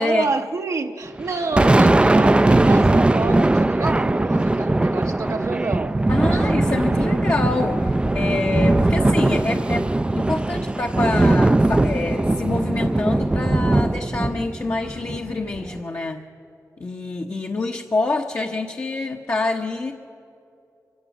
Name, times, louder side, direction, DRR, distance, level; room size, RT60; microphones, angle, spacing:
voice 1, 0.0-6.0 6.3-6.5 6.9-7.0, right 4 dB, 60° right, 0.8 m, -28 dB
Thunder, 1.2-15.8, right 2 dB, 15° right, 0.4 m, -19 dB
voice 2, 6.1-16.2 16.8-19.9, left 3 dB, 45° left, 1.0 m, -26 dB
24.5 x 16.5 x 7.2 m
wide cardioid pair, 90°, 6 cm